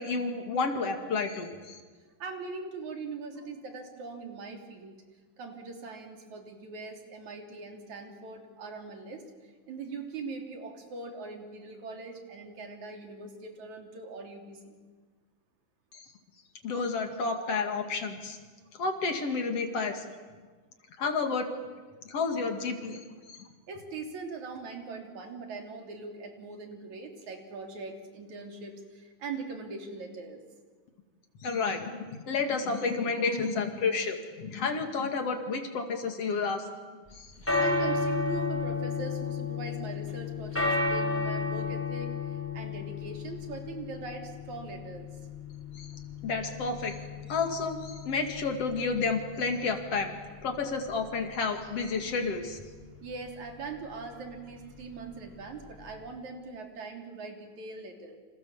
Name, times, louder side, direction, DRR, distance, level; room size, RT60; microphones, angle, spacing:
voice 1, 0.0-1.8 15.9-16.0 16.6-18.4 18.8-20.0 21.0-21.5 22.1-23.0 23.3-23.5 31.4-32.0 32.3-36.6 37.1-37.6 45.7-45.9 46.2-47.0 47.3-50.1 50.4-52.6, left 4 dB, 55° left, 6 dB, 3.1 m, -30 dB
voice 2, 2.2-5.0 5.4-14.8 23.7-30.4 37.6-45.1 53.0-58.2, right 3 dB, 75° right, 3 dB, 4.6 m, -41 dB
sound 1, 37.1-56.2, left 3 dB, 5° left, 5.6 m, -34 dB
29.5 x 27.0 x 7.3 m, 1.4 s
omnidirectional pair, 3.4 m